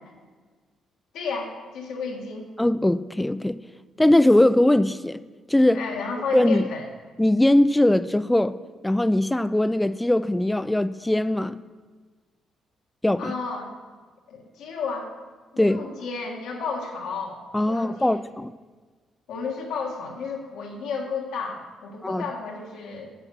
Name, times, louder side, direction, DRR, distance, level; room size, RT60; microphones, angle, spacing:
voice 1, 1.1-2.5 5.7-6.9 13.2-13.7 14.3-15.1 15.5-18.2 19.3-23.1, left 5 dB, 85° left, -1 dB, 1.7 m, -32 dB
voice 2, 2.6-3.6 4.0-5.2 5.5-5.8 6.3-6.7 7.2-8.5 8.8-11.6 13.0-13.3 15.6-15.8 17.5-18.5 22.0-22.2, left 1 dB, 10° left, 15 dB, 0.3 m, -20 dB
8.2 x 7.3 x 5.5 m, 1.4 s
cardioid pair, 90°, 0 cm